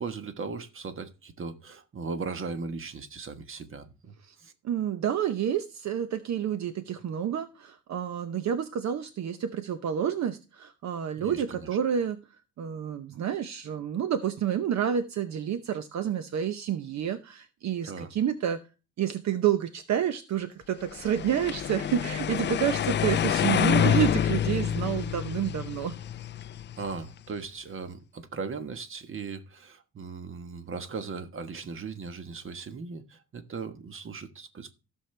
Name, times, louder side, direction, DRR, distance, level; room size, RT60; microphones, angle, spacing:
voice 1, 0.0-4.5 11.2-11.7 17.9-18.1 26.8-34.7, right 4 dB, 45° right, 1.4 m, -38 dB
voice 2, 4.6-12.2 12.6-18.6 19.0-26.0, right 9 dB, 65° right, 0.9 m, -29 dB
sound 1, 20.9-27.1, left 9 dB, 40° left, 0.4 m, -27 dB
15.5 x 6.5 x 3.3 m
cardioid pair, 90°, 30 cm